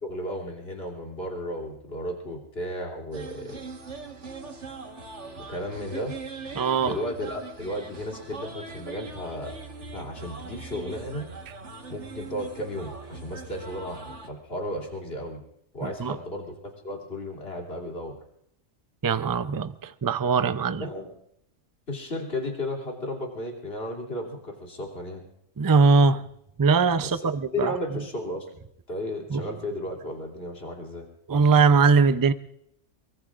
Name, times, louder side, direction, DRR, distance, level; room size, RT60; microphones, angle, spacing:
voice 1, 0.0-3.6 5.5-6.1 6.8-9.6 9.9-11.3 11.9-15.4 15.7-18.1 20.8-21.2 21.9-25.2 27.0-28.5 28.9-31.1, left 1 dB, 55° left, 3.2 m, -34 dB
sound 1, 3.1-14.3, right 3 dB, 70° right, 1.9 m, -41 dB
voice 2, 6.6-7.0 15.8-16.2 19.0-19.7 20.0-20.8 25.6-26.2 26.6-27.7 29.3-29.4 31.3-32.3, right 4 dB, 35° right, 0.3 m, -21 dB
23.5 x 23.5 x 2.5 m
omnidirectional pair, 1.3 m